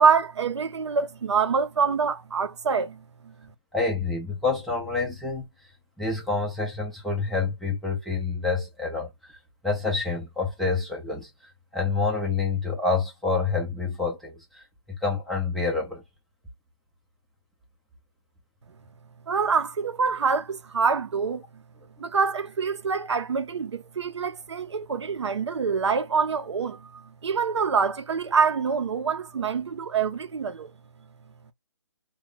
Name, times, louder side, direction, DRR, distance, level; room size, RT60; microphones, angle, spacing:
voice 1, 0.0-3.3 19.3-21.4 22.0-30.7, right 5 dB, 70° right, 0.6 m, -25 dB
voice 2, 3.7-5.5 6.0-9.1 9.6-14.6 15.0-16.0, left 4 dB, ahead, 0.4 m, -27 dB
3.0 x 2.2 x 3.7 m
hypercardioid pair, 155°, 15 cm